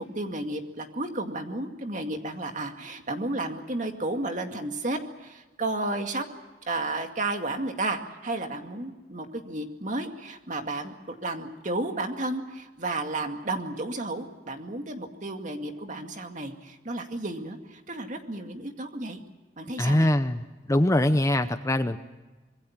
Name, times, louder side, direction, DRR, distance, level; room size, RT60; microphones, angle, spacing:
voice 1, 0.0-6.3 6.7-19.2 19.6-20.1, right 2 dB, 40° right, 5 dB, 2.2 m, -32 dB
voice 2, 19.8-22.0, left 1 dB, 15° left, 10 dB, 0.7 m, -23 dB
25.5 x 22.0 x 7.3 m, 1.2 s
head